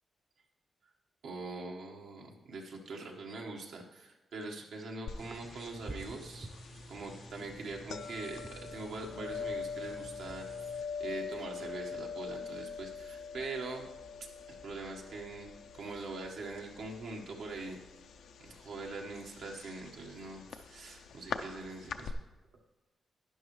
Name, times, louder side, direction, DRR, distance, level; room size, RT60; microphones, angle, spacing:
voice 1, 1.2-6.5 6.9-13.9 14.6-15.5 15.7-17.8 18.4-22.1, right 3 dB, 80° right, 0 dB, 1.5 m, -43 dB
sound 1, 5.1-22.1, left 6 dB, 80° left, 0.6 m, -44 dB
sound 2, 5.2-10.8, right 1 dB, 25° right, 0.6 m, -50 dB
12.0 x 10.0 x 3.2 m, 1.1 s
cardioid pair, 105°, 0 cm